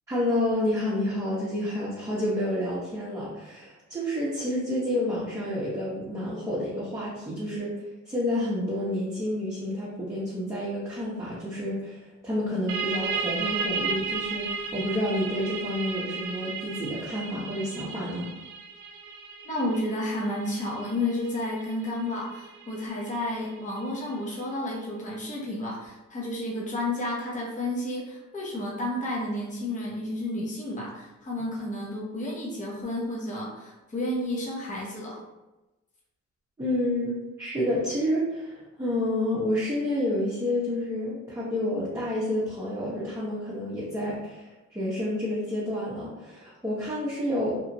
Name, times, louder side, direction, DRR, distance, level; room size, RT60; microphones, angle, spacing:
voice 1, 0.1-18.3 36.6-47.6, left 1 dB, 10° right, -9 dB, 0.8 m, -29 dB
sound 1, 12.7-24.0, right 5 dB, 70° right, 0.4 m, -34 dB
voice 2, 19.4-35.2, left 1 dB, 25° left, -4 dB, 0.8 m, -31 dB
2.9 x 2.3 x 2.7 m, 1.1 s
cardioid pair, 90°, 30 cm